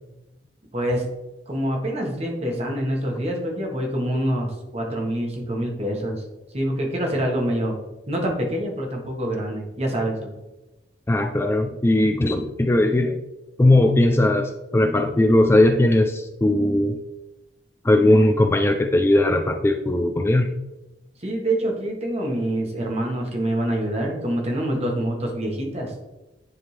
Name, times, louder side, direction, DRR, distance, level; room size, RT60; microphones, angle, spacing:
voice 1, 0.7-1.1 1.5-6.2 6.5-7.7 8.1-10.3 21.2-26.0, right 1 dB, 40° right, 0 dB, 1.3 m, -26 dB
voice 2, 11.1-13.2 13.6-17.0 17.8-20.5, left 1 dB, 15° left, 5 dB, 0.3 m, -19 dB
9.9 x 3.6 x 3.2 m, 1.0 s
head